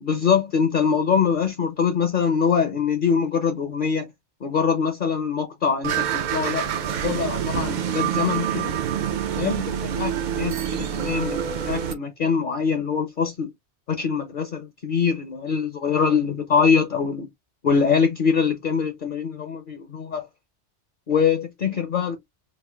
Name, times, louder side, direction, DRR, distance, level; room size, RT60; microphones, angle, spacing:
voice 1, 0.0-4.1 4.4-8.7 9.4-13.5 14.0-17.3 17.6-20.2 21.1-22.2, left 6 dB, 50° left, 0.7 m, -23 dB
sound 1, 5.8-11.9, right 9 dB, 60° right, 0.5 m, -26 dB
4.2 x 2.4 x 2.2 m
omnidirectional pair, 1.2 m